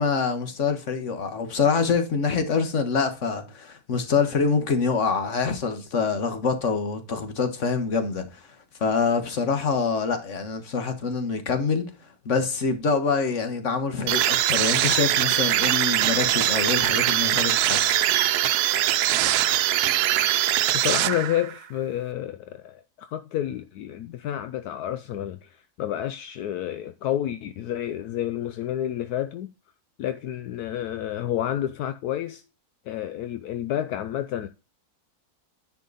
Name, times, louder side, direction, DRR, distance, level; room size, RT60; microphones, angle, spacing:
voice 1, 0.0-8.4 8.8-11.8 12.2-17.9, left 5 dB, 50° left, 1.7 m, -25 dB
sound 1, 14.1-21.6, right 13 dB, 80° right, 1.1 m, -22 dB
voice 2, 20.7-29.5 30.0-32.4 32.9-34.5, left 11 dB, 80° left, 1.1 m, -30 dB
10.0 x 5.2 x 4.0 m
omnidirectional pair, 1.6 m